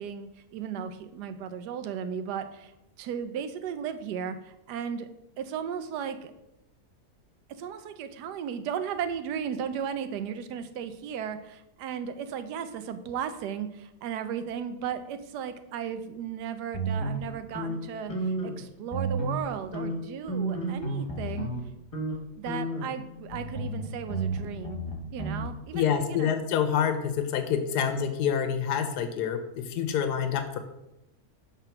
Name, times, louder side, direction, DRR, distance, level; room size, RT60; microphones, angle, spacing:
voice 1, 0.0-2.7 3.0-5.1 5.4-6.3 7.5-21.5 22.4-24.8 25.1-26.3 27.8-27.9, right 8 dB, 85° right, 10 dB, 1.2 m, -35 dB
sound 1, 16.7-18.6 18.9-19.5 19.7-21.6 21.9-22.2 22.5-25.5, right 2 dB, 25° left, 1.1 m, -32 dB
voice 2, 25.7-30.6, left 8 dB, 80° left, 8 dB, 1.2 m, -27 dB
5.8 x 3.6 x 5.7 m, 0.88 s
omnidirectional pair, 1.7 m